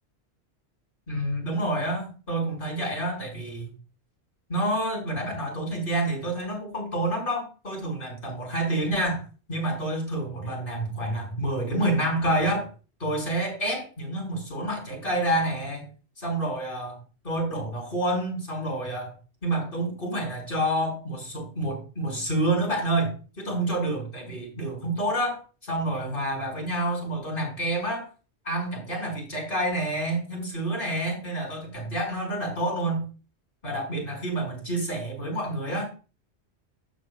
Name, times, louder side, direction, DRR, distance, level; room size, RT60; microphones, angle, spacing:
voice 1, 1.1-3.7 4.5-9.2 9.5-12.7 13.0-15.9 16.2-17.0 17.2-19.1 19.4-28.1 28.4-33.1 33.6-35.9, right 1 dB, 50° left, 0 dB, 5.9 m, -28 dB
12.0 x 9.1 x 2.3 m, 0.34 s
omnidirectional pair, 1.1 m